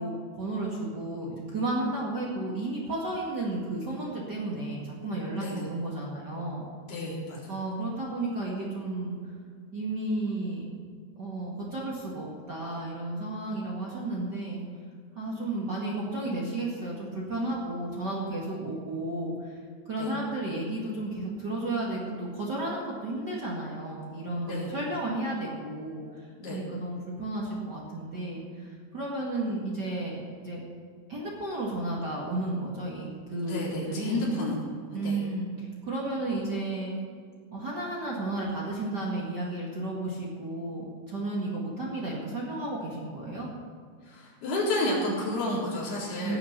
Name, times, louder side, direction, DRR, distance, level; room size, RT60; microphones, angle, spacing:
voice 1, 0.0-6.7 7.5-9.1 9.7-10.7 11.2-14.6 15.1-19.6 19.8-30.6 31.1-34.3 34.9-36.9 37.5-43.5 46.2-46.4, right 2 dB, 65° right, -5 dB, 1.0 m, -33 dB
voice 2, 6.9-7.5 20.0-20.1 24.5-24.8 26.4-26.6 33.4-34.5 34.9-35.2 44.0-46.4, left 1 dB, 55° left, -6 dB, 5.8 m, -31 dB
19.0 x 7.1 x 6.8 m, 2.1 s
omnidirectional pair, 5.6 m